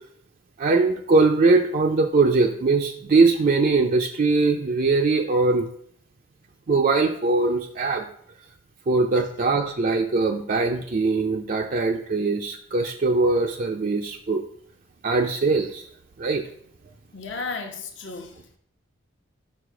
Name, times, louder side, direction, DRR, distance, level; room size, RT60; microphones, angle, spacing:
voice 1, 0.6-5.7 6.7-8.1 8.9-14.4 15.0-15.9 16.2-16.4, right 3 dB, 45° right, 2 dB, 0.4 m, -21 dB
voice 2, 17.1-18.6, left 4 dB, 60° left, 5 dB, 0.9 m, -34 dB
5.5 x 4.8 x 5.0 m, 0.64 s
head